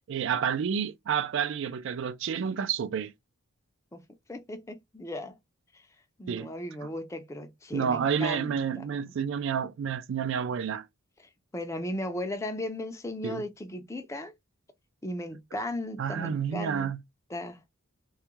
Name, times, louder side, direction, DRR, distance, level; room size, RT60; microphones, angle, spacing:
voice 1, 0.1-3.1 6.3-6.5 6.8-6.9 7.7-10.9 13.2-13.4 16.0-17.0, right 7 dB, 55° right, 0.3 m, -29 dB
voice 2, 4.3-5.4 6.2-8.8 11.2-14.3 15.0-16.9 17.3-17.6, left 1 dB, 15° left, 0.4 m, -36 dB
2.3 x 2.1 x 2.9 m
head